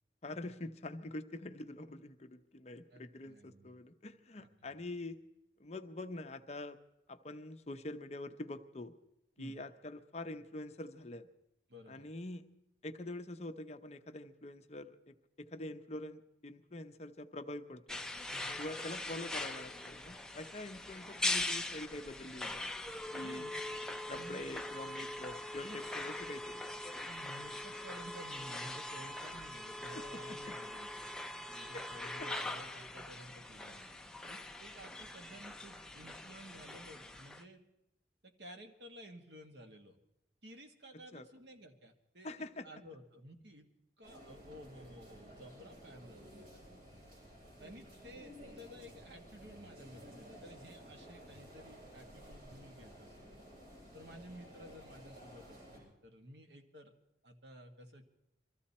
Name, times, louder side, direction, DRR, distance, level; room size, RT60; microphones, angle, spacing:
voice 1, 0.2-5.2 5.6-6.8 7.1-8.9 9.4-11.3 11.9-12.4 12.8-18.0 18.6-22.7 23.1-23.4 24.1-26.6 29.9-30.4 31.7-31.8 32.2-32.3 41.1-41.3 42.2-42.7, left 2 dB, 35° left, 8 dB, 0.7 m, -45 dB
voice 2, 2.9-3.8 4.4-4.8 9.4-9.5 11.7-12.1 18.3-18.6 23.2-23.6 24.1-24.5 27.0-30.9 31.5-37.6 38.2-40.0 40.4-43.7 44.0-46.6 47.6-53.3 53.9-56.9 57.2-58.0, equal, 70° right, 5 dB, 1.7 m, -54 dB
sound 1, 17.9-37.4, left 2 dB, 5° left, 0.6 m, -42 dB
sound 2, 44.0-55.8, equal, 55° right, 7.8 m, -54 dB
23.0 x 14.0 x 4.3 m, 0.86 s
head